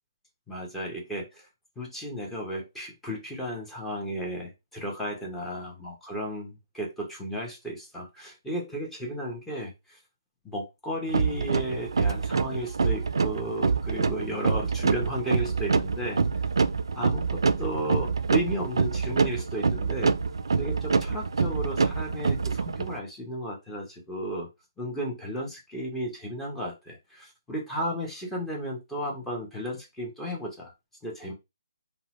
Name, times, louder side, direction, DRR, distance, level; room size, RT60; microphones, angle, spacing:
voice 1, 0.5-1.5 1.8-10.0 10.4-16.2 16.9-20.1 20.6-24.5 24.8-30.7 31.0-31.3, equal, 5° left, 0.7 m, -34 dB
sound 1, 11.1-22.9, right 4 dB, 85° right, 0.4 m, -26 dB
2.7 x 2.0 x 2.9 m
hypercardioid pair, 160°, 2 cm